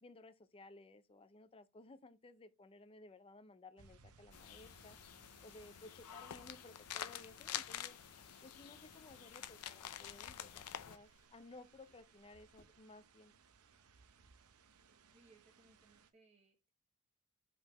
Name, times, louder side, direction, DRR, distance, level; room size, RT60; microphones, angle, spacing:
voice 1, 0.0-5.0 5.4-8.0 8.4-13.3, left 2 dB, 25° left, 0.5 m, -58 dB
sound 1, 3.8-16.1, right 5 dB, 75° right, 0.7 m, -67 dB
sound 2, 4.3-11.0, left 11 dB, 85° left, 0.5 m, -48 dB
sound 3, 6.0-12.6, left 2 dB, 65° left, 1.7 m, -73 dB
voice 2, 15.1-16.7, right 3 dB, 30° right, 1.0 m, -68 dB
5.7 x 5.5 x 3.0 m
head